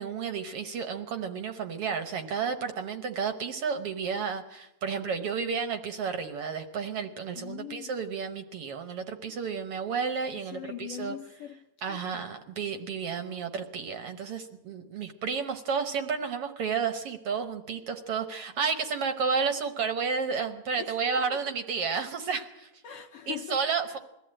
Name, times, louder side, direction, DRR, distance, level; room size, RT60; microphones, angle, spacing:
voice 1, 0.0-11.2 11.8-22.7 23.3-24.0, right 5 dB, 60° right, 1.7 m, -31 dB
voice 2, 7.4-7.9 10.5-12.3 20.7-21.4 22.8-23.6 23.9-24.0, left 9 dB, 65° left, 1.6 m, -41 dB
22.0 x 14.5 x 8.8 m
omnidirectional pair, 3.5 m